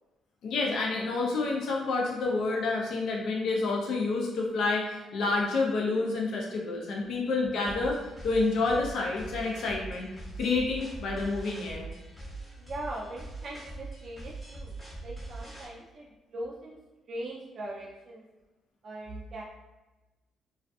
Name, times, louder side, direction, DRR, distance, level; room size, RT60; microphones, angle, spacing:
voice 1, 0.4-10.1 10.4-11.9, left 3 dB, 75° left, -1 dB, 0.4 m, -29 dB
voice 2, 7.0-7.4 12.6-16.8 17.1-18.2 18.8-19.4, right 1 dB, 55° right, -5 dB, 0.4 m, -41 dB
sound 1, 7.7-15.7, right 2 dB, 5° left, 0.7 m, -42 dB
2.5 x 2.3 x 2.3 m, 1.1 s
cardioid pair, 90°, 0 cm